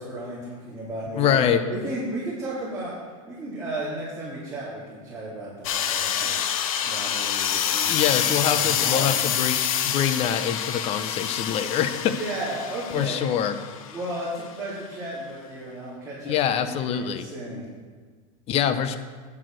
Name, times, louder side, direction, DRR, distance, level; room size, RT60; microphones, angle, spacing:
voice 1, 0.0-6.4 6.8-9.2 12.2-13.2 13.9-16.4 16.6-17.7, right 1 dB, 5° right, -12 dB, 3.6 m, -34 dB
voice 2, 1.1-1.6 6.2-6.3 7.9-9.6 9.8-12.2 12.9-13.6 16.2-17.3 18.5-19.0, left 9 dB, 35° left, 11 dB, 0.8 m, -24 dB
sound 1, 5.6-14.2, left 9 dB, 80° left, 0.9 m, -27 dB
10.0 x 7.8 x 6.4 m, 1.5 s
supercardioid pair, 140°, 18 cm